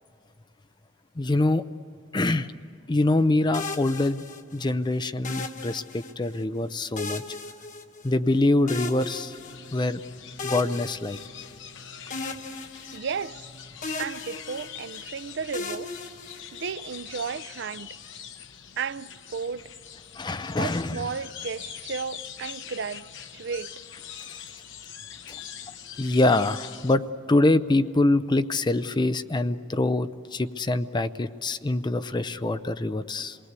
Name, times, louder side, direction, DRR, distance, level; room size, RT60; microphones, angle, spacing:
voice 1, 1.2-1.6 2.1-2.5 2.9-4.2 4.5-7.2 8.0-9.4 9.7-10.0 10.4-11.2 20.2-21.1 24.3-24.4 26.0-27.0 27.3-33.4, left 2 dB, 20° left, 0.5 m, -24 dB
sound 1, 3.5-4.7 5.2-6.4 7.0-8.3 8.7-9.9 10.4-11.7 12.1-13.5 13.8-15.0 15.5-16.9, left 3 dB, 40° left, 1.1 m, -37 dB
sound 2, 9.0-26.9, left 8 dB, 65° left, 0.9 m, -43 dB
voice 2, 12.9-13.5 14.0-15.9 16.5-17.9 18.8-19.6 20.6-23.1 23.3-23.7, right 6 dB, 60° right, 0.5 m, -33 dB
27.0 x 19.5 x 8.2 m
head